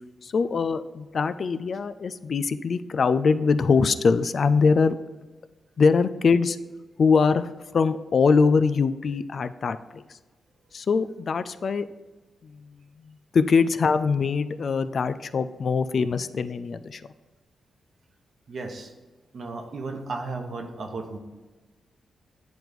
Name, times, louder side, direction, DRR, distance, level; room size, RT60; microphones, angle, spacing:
voice 1, 0.2-5.0 5.8-6.6 7.0-10.2 10.7-11.9 12.4-12.7 13.0-17.0, left 5 dB, 55° left, 11 dB, 0.3 m, -23 dB
voice 2, 18.5-18.9 19.3-21.2, right 3 dB, 60° right, 4 dB, 1.0 m, -34 dB
9.2 x 3.1 x 5.1 m, 1.3 s
cardioid pair, 95°, 0 cm